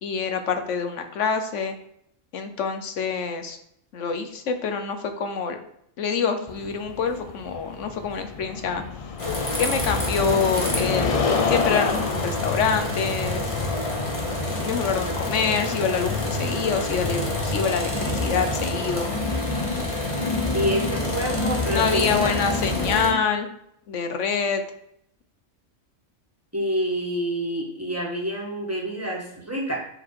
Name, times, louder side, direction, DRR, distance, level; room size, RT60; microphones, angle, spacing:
voice 1, 0.0-1.7 2.3-3.6 3.9-5.6 6.0-8.8 9.6-11.2 11.5-13.5 14.5-19.1 21.7-23.5 23.9-24.6, left 5 dB, 80° left, 7 dB, 1.2 m, -26 dB
sound 1, 6.5-15.3, left 4 dB, 45° left, 0.5 m, -29 dB
sound 2, 9.2-23.1, left 2 dB, 30° left, 1.3 m, -27 dB
voice 2, 20.5-22.4 26.5-29.8, equal, 15° right, -2 dB, 1.4 m, -27 dB
6.9 x 3.9 x 4.7 m, 0.73 s
omnidirectional pair, 1.2 m